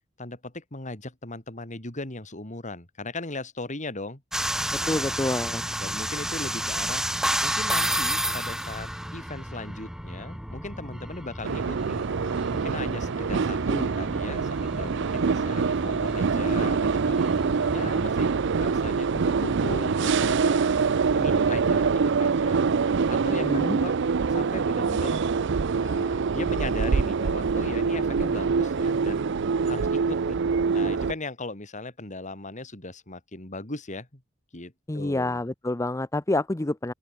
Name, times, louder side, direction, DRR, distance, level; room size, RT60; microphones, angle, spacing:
voice 1, 0.2-4.2 4.8-5.2 5.8-7.0 7.4-12.0 12.5-17.2 17.7-20.7 21.1-22.6 23.1-24.0 24.3-25.2 25.8-29.3 29.6-30.4 30.7-34.2 34.5-35.4, left 2 dB, 40° left, 3.2 m, -38 dB
sound 1, 4.3-18.4, right 1 dB, 5° right, 3.4 m, -32 dB
voice 2, 4.9-5.7 23.3-23.8 34.9-36.9, left 2 dB, 15° left, 0.6 m, -28 dB
sound 2, 11.4-31.1, right 5 dB, 65° right, 0.5 m, -25 dB
sound 3, 18.5-31.2, equal, 85° left, 7.2 m, -56 dB
open air
head